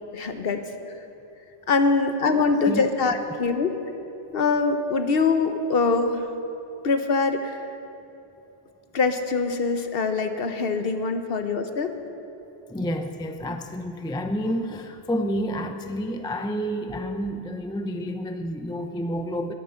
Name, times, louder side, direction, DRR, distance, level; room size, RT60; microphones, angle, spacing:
voice 1, 0.1-1.0 1.7-3.7 4.3-6.3 6.8-7.7 8.9-11.9, left 4 dB, 55° left, 7 dB, 1.0 m, -23 dB
voice 2, 2.4-2.9 12.7-19.5, equal, 5° left, 6 dB, 0.4 m, -29 dB
19.5 x 8.8 x 5.6 m, 2.9 s
omnidirectional pair, 1.2 m